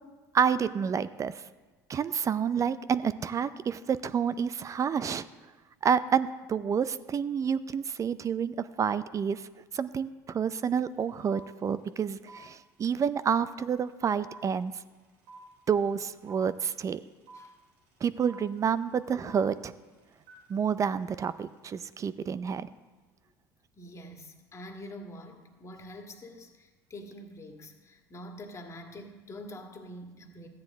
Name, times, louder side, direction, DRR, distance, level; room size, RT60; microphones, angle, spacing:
voice 1, 0.3-1.3 1.9-5.2 5.8-9.4 9.7-14.7 15.7-17.0 18.0-19.7 20.5-22.7, right 7 dB, 35° right, 15 dB, 0.5 m, -29 dB
sound 1, 10.6-10.7 10.9-22.1, right 3 dB, 70° right, 3.0 m, -53 dB
voice 2, 23.8-30.5, left 1 dB, 30° left, 3 dB, 1.8 m, -45 dB
13.5 x 9.6 x 3.6 m, 1.3 s
hypercardioid pair, 80°, 10 cm